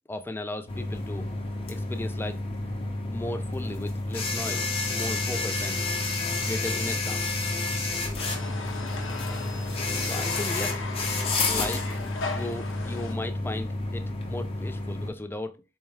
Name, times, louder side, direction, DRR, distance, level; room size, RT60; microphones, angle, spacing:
voice 1, 0.1-1.3 1.7-2.3 3.1-5.8 6.4-7.2 9.7-10.8 11.5-11.9 12.4-15.6, left 2 dB, 10° left, 0.4 m, -36 dB
sound 1, 0.7-15.1, left 2 dB, 30° left, 0.8 m, -30 dB
sound 2, 8.2-13.1, left 3 dB, 80° left, 0.7 m, -37 dB
4.3 x 2.3 x 3.3 m
head